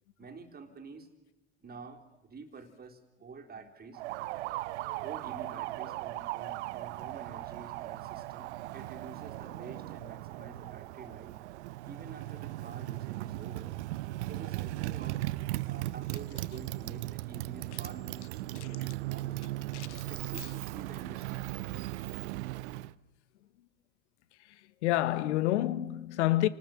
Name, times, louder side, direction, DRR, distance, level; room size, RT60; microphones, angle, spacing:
voice 1, 0.2-1.1 1.6-4.0 5.0-11.3 11.8-13.7 14.3-15.3 15.6-19.5 20.1-22.1, right 4 dB, 25° right, 3.6 m, -49 dB
Motorcycle, 3.9-22.9, right 17 dB, 70° right, 0.8 m, -38 dB
voice 2, 19.7-20.1 20.4-20.5 24.5-26.5, left 15 dB, 70° left, 1.3 m, -29 dB
28.5 x 19.5 x 7.6 m
hypercardioid pair, 75°, 36 cm